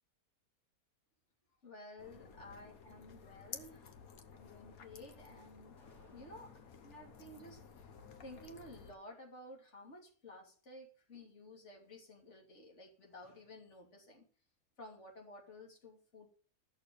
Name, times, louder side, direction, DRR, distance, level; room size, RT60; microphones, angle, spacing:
voice 1, 1.6-5.8 6.0-6.5 6.8-7.6 8.2-14.2 14.8-16.3, left 1 dB, 45° left, 0 dB, 3.2 m, -54 dB
sound 1, 2.0-8.9, left 6 dB, 65° left, 1.5 m, -54 dB
sound 2, 5.8-6.8, left 2 dB, 90° left, 3.7 m, -69 dB
14.0 x 6.7 x 6.8 m, 0.42 s
omnidirectional pair, 1.7 m